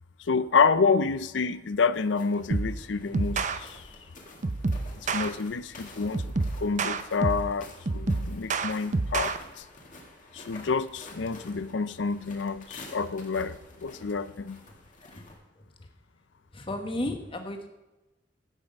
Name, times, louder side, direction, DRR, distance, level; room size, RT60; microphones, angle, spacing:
voice 1, 0.3-3.8 5.1-6.2 6.6-9.6 10.3-13.6 13.8-14.6, left 5 dB, 85° left, 15 dB, 0.6 m, -28 dB
sound 1, 1.9-15.4, left 2 dB, 45° left, 2.0 m, -50 dB
sound 2, 2.5-2.8 3.1-3.6 4.4-5.3 6.1-7.5 7.9-9.4, right 3 dB, 40° right, 0.6 m, -28 dB
voice 2, 15.6-15.9 16.5-17.7, left 1 dB, 30° left, 4 dB, 1.3 m, -34 dB
15.5 x 6.1 x 5.3 m, 1.0 s
head